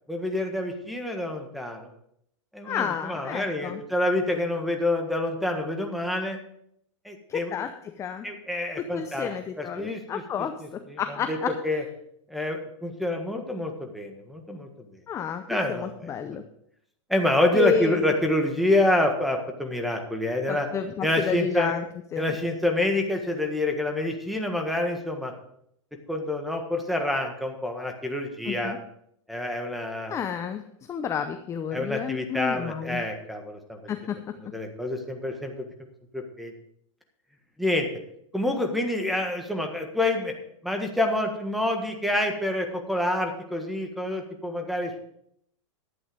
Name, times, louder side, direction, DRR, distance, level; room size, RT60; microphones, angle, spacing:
voice 1, 0.1-1.9 2.5-6.4 7.0-7.5 8.2-9.3 9.6-10.2 10.6-11.4 11.6-11.8 12.3-14.7 15.5-16.4 17.1-20.7 21.0-21.7 22.2-25.3 26.1-28.7 29.3-30.2 31.7-33.8 34.5-35.5 36.1-36.5 37.6-37.9 38.3-40.3 40.6-45.0, left 1 dB, ahead, 4 dB, 1.5 m, -27 dB
voice 2, 2.6-3.8 7.3-7.7 8.0-8.3 8.9-11.5 15.1-15.4 15.7-16.4 17.5-17.9 20.5-21.8 22.1-22.3 28.5-28.8 30.1-30.6 30.9-33.0 33.9-34.2, left 8 dB, 15° left, 8 dB, 0.6 m, -30 dB
11.5 x 8.6 x 5.2 m, 0.73 s
hypercardioid pair, 140°, 17 cm